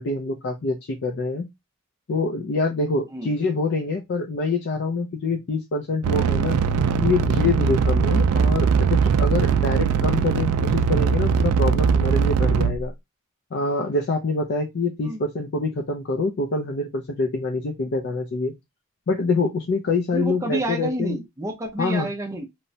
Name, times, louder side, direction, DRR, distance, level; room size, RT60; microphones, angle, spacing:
voice 1, 0.0-1.5 2.1-6.6 7.0-12.9 13.5-18.5 19.1-21.2 21.8-22.1, left 3 dB, 55° left, 0.4 m, -25 dB
sound 1, 6.0-12.9, right 6 dB, 90° right, 0.3 m, -20 dB
voice 2, 20.1-22.5, right 1 dB, 15° right, 0.5 m, -29 dB
3.0 x 2.0 x 2.7 m
head